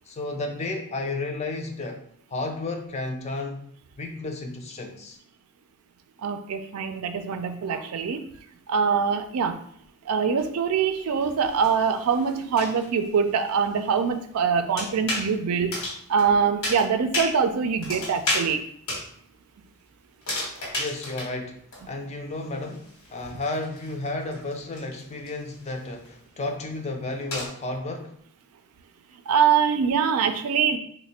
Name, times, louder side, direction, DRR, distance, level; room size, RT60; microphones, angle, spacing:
voice 1, 0.1-2.0 2.3-3.6 4.0-5.2 20.8-21.6 21.9-28.1, left 2 dB, 30° left, 4 dB, 0.4 m, -32 dB
voice 2, 6.2-8.2 8.7-9.6 10.1-15.8 16.1-18.6 29.3-30.8, right 6 dB, 80° right, 7 dB, 0.4 m, -24 dB
sound 1, 10.4-10.5 11.2-12.8 14.8-15.3 15.7-16.3 16.6-17.3 17.8-18.5 18.9-19.1 20.2-21.3 21.7-21.8 22.1-22.2 22.7-25.7 26.0-26.1 26.8-26.9 27.3-27.5, left 1 dB, 75° left, 1.1 m, -32 dB
3.2 x 2.1 x 4.1 m, 0.65 s
head